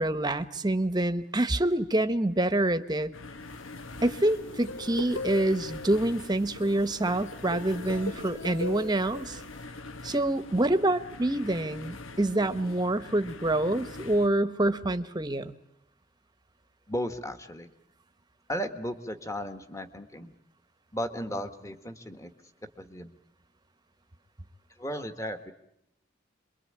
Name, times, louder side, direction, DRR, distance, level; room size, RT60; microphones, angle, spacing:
voice 1, 0.0-3.1 4.0-9.4 10.0-15.5, right 1 dB, 20° right, 11 dB, 1.1 m, -26 dB
sound 1, 3.1-14.3, left 3 dB, 85° left, 1.3 m, -44 dB
sound 2, 3.5-9.6, left 1 dB, 70° left, 3.2 m, -40 dB
voice 2, 16.9-17.7 18.5-20.3 20.9-22.3 22.8-23.1 24.8-25.5, equal, 15° left, 8 dB, 1.6 m, -35 dB
27.0 x 23.0 x 8.7 m, 0.79 s
head